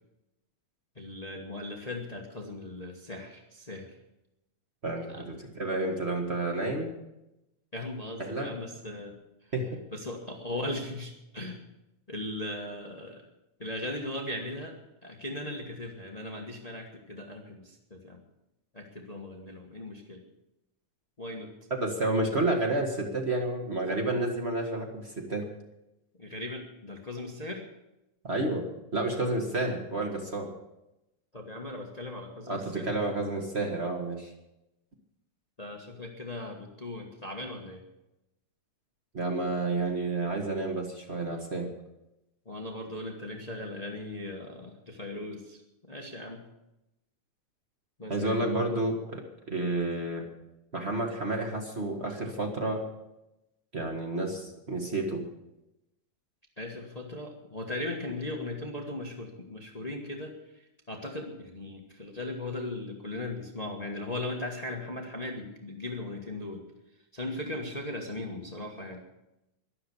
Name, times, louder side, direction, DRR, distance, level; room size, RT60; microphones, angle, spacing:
voice 1, 0.9-3.9 5.1-5.3 7.7-9.1 9.9-11.6 12.1-13.2 13.6-18.2 18.7-20.2 21.2-21.5 26.2-27.6 31.3-33.3 35.6-37.8 42.4-46.4 48.0-48.4 56.6-60.3 60.9-66.6 67.1-69.0, left 2 dB, 80° left, 2 dB, 0.3 m, -38 dB
voice 2, 4.8-6.9 8.2-8.5 9.5-9.7 21.7-25.4 28.2-30.5 32.5-34.3 39.1-41.7 48.1-50.2 50.7-52.8 53.7-55.2, right 2 dB, 30° right, 2 dB, 1.4 m, -30 dB
12.5 x 11.5 x 8.2 m, 0.92 s
omnidirectional pair, 3.5 m